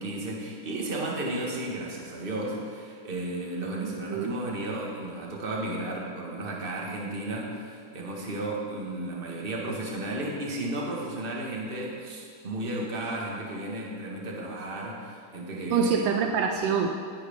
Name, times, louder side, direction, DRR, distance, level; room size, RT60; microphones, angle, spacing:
voice 1, 0.0-15.9, right 1 dB, 30° right, -2 dB, 1.7 m, -33 dB
voice 2, 3.8-4.3 15.7-16.9, right 6 dB, 80° right, 4 dB, 1.4 m, -26 dB
17.0 x 9.5 x 3.7 m, 2.2 s
omnidirectional pair, 2.1 m